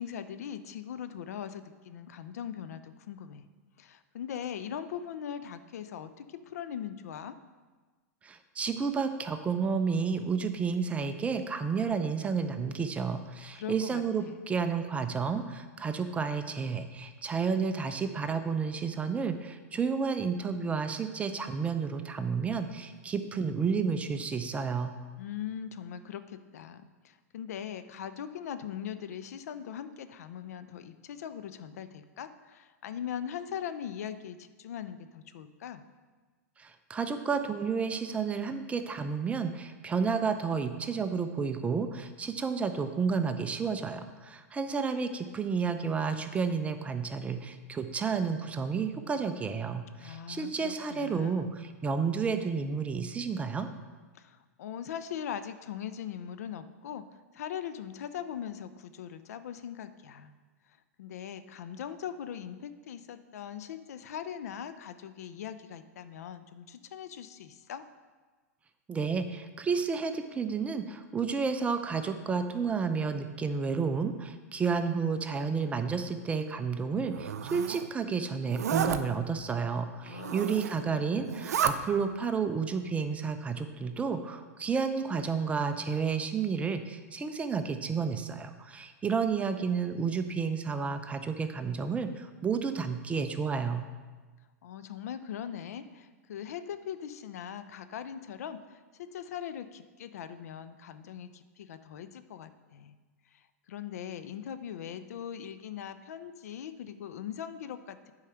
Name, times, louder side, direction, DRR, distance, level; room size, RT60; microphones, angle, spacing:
voice 1, 0.0-3.5 3.8-7.4 13.5-14.4 25.2-35.8 50.0-51.6 54.1-57.1 57.3-60.3 60.7-67.8 80.0-81.5 94.6-103.0 103.3-108.1, left 9 dB, 75° left, 12 dB, 0.5 m, -41 dB
voice 2, 8.2-24.9 36.6-53.7 68.9-93.9, right 5 dB, 15° right, 8 dB, 0.5 m, -31 dB
Zipper (clothing), 77.1-77.9 78.5-79.0 80.1-80.8 81.2-81.7, right 9 dB, 80° right, 0.5 m, -31 dB
8.5 x 4.8 x 5.8 m, 1.3 s
hypercardioid pair, 120°, 9 cm